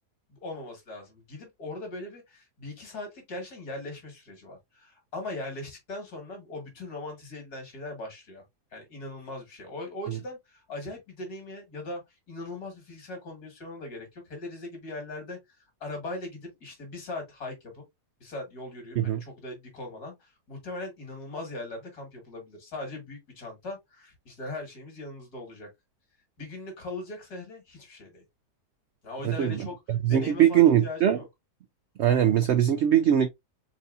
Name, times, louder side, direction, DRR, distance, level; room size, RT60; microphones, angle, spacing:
voice 1, 0.3-8.4 8.7-12.0 12.3-15.4 15.8-17.8 18.2-25.7 26.4-28.2 29.0-29.7 30.1-31.3, left 2 dB, 65° left, 2.6 m, -39 dB
voice 2, 29.2-31.2 32.0-33.3, right 10 dB, 75° right, 0.6 m, -22 dB
4.6 x 4.1 x 2.5 m
omnidirectional pair, 1.7 m